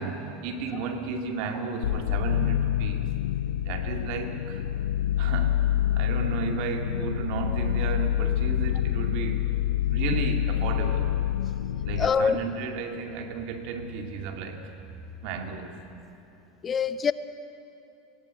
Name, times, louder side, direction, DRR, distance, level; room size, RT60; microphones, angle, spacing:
voice 1, 0.0-3.1 3.6-4.6 5.2-9.5 9.9-11.1 11.8-14.7 15.2-15.8, right 5 dB, 60° right, 2.4 m, -33 dB
sound 1, 1.8-12.1, left 11 dB, 90° left, 0.7 m, -27 dB
voice 2, 12.0-12.4 16.6-17.1, left 6 dB, 30° left, 0.7 m, -24 dB
19.5 x 18.0 x 8.3 m
hypercardioid pair, 105°, 0 cm